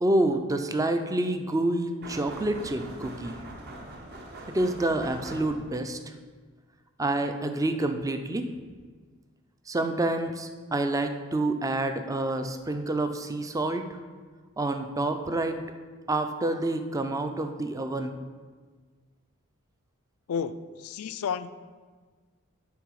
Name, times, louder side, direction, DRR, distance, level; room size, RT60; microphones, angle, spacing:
voice 1, 0.0-3.4 4.5-6.0 7.0-8.5 9.7-14.0 14.6-15.6 16.1-18.1, right 2 dB, 15° right, 7 dB, 0.4 m, -28 dB
sound 1, 2.0-5.9, right 1 dB, 50° right, 1.1 m, -42 dB
voice 2, 20.3-21.5, left 6 dB, 80° left, 13 dB, 0.4 m, -32 dB
10.5 x 4.0 x 4.7 m, 1.5 s
head